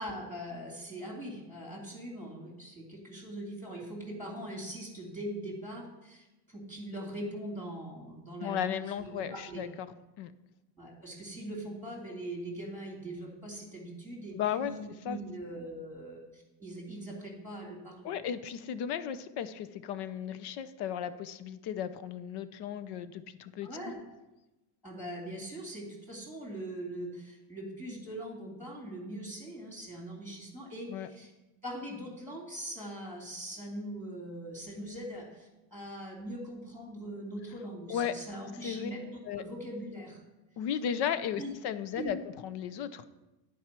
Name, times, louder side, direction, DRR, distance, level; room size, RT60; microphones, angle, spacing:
voice 1, 0.0-6.3 6.5-9.6 10.8-18.3 23.6-24.0 24.8-31.3 31.6-40.2 41.4-41.5 41.9-42.2, right 1 dB, 5° left, -2 dB, 2.8 m, -41 dB
voice 2, 8.4-9.9 10.2-10.3 14.3-14.7 15.0-15.2 18.0-23.7 30.9-31.1 37.9-38.2 38.6-38.9 39.3-39.4 40.6-43.0, left 9 dB, 55° left, 13 dB, 0.8 m, -35 dB
10.0 x 4.8 x 6.0 m, 1.0 s
supercardioid pair, 105°, 47 cm